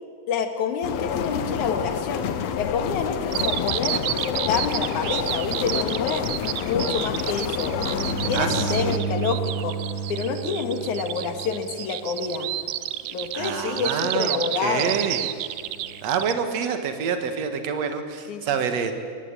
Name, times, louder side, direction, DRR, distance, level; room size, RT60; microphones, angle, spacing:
voice 1, 0.3-2.3 2.6-7.8 8.3-9.8 10.1-12.5 13.1-15.0 18.3-18.5, left 5 dB, 85° left, 6 dB, 3.3 m, -28 dB
sound 1, 0.8-9.0, left 8 dB, 70° left, 2.1 m, -28 dB
Bird vocalization bird call bird song, 3.3-16.3, right 14 dB, 80° right, 2.1 m, -30 dB
sound 2, 7.6-12.3 15.5-16.1, right 5 dB, 10° left, 3.3 m, -32 dB
voice 2, 8.3-9.0 13.3-15.3 16.0-18.9, right 6 dB, 65° right, 7 dB, 2.7 m, -27 dB
23.5 x 18.5 x 9.0 m, 2.1 s
omnidirectional pair, 3.4 m